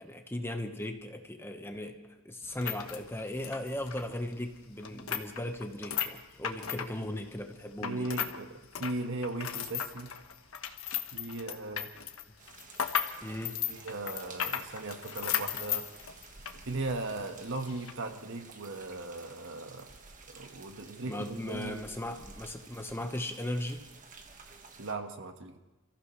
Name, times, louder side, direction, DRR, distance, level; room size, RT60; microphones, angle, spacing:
voice 1, 0.0-2.0 2.2-8.1 13.2-13.6 21.1-23.8, left 1 dB, 10° left, 5 dB, 1.2 m, -37 dB
sound 1, 2.4-8.4 8.6-16.6 16.9-17.0 17.7-17.9, left 9 dB, 80° left, 1.2 m, -36 dB
voice 2, 7.8-10.1 11.1-11.9 13.7-15.9 16.6-19.9 20.3-21.9 24.8-25.6, right 2 dB, 65° right, 5 dB, 1.5 m, -38 dB
sound 2, 12.4-24.9, right 4 dB, 40° right, 1.6 m, -53 dB
28.5 x 15.0 x 3.2 m, 1.1 s
head